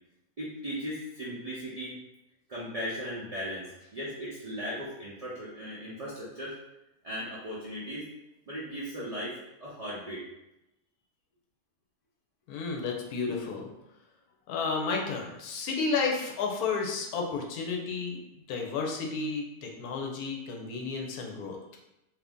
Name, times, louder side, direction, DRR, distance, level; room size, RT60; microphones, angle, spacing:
voice 1, 0.4-2.0 2.5-6.5 7.0-8.1 8.5-10.2, equal, 50° right, -8 dB, 0.4 m, -37 dB
voice 2, 12.5-13.7 14.5-18.2 18.5-21.6, left 4 dB, 85° left, 1 dB, 1.1 m, -32 dB
2.7 x 2.6 x 3.5 m, 0.91 s
omnidirectional pair, 1.6 m